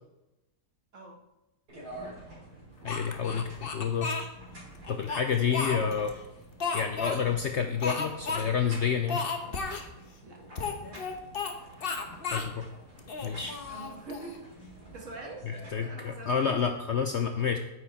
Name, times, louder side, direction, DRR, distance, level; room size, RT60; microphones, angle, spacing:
sound 1, 1.7-15.7, right 1 dB, 85° right, 3.7 m, -49 dB
voice 1, 2.8-4.1 4.9-6.2 6.7-9.2 12.3-12.7 13.2-13.6 15.5-17.6, left 7 dB, 60° left, 6 dB, 0.8 m, -29 dB
Speech, 2.9-4.3 4.8-6.1 6.6-7.2 7.8-8.4 8.7-8.8 9.1-9.8 10.5-11.5 11.8-12.5 13.0-14.4, left 4 dB, 40° left, 1.0 m, -33 dB
voice 2, 13.7-14.5 14.9-15.5 15.8-16.5, right 3 dB, 50° right, 0 dB, 1.9 m, -44 dB
9.5 x 7.9 x 4.2 m, 1.0 s
omnidirectional pair, 1.7 m